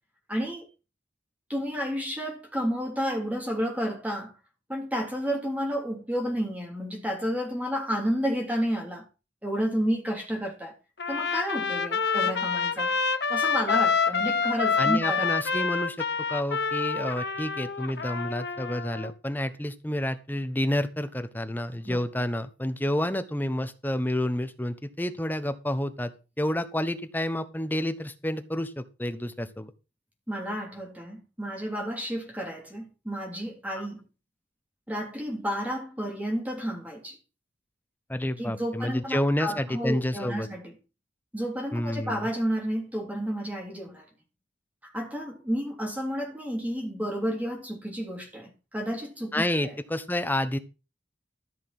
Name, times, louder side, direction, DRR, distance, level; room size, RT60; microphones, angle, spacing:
voice 1, 0.3-0.6 1.5-4.3 4.7-9.0 9.4-10.7 11.1-12.9 13.3-15.3 21.8-22.0 30.3-34.0 34.9-37.2 38.4-40.7 41.3-44.0 44.8-49.7, equal, 10° right, 3.2 m, -31 dB
Trumpet, 11.0-19.1, left 5 dB, 65° left, 1.0 m, -27 dB
voice 2, 14.8-16.0 16.3-29.7 38.1-40.5 41.7-42.3 49.3-50.6, left 1 dB, 10° left, 1.0 m, -29 dB
14.0 x 6.0 x 6.1 m
head